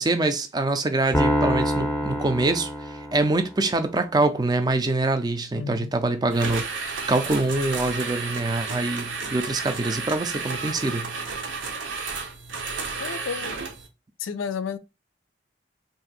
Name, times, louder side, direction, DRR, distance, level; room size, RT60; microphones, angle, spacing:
voice 1, 0.0-2.7 3.1-11.1, right 2 dB, 20° right, 0.4 m, -24 dB
Piano, 1.1-3.6, equal, 10° left, 0.7 m, -25 dB
voice 2, 5.5-5.9 13.0-13.6 14.2-14.8, left 6 dB, 90° left, 0.4 m, -31 dB
sound 1, 6.3-13.9, right 4 dB, 75° right, 0.8 m, -32 dB
2.7 x 2.5 x 4.0 m
head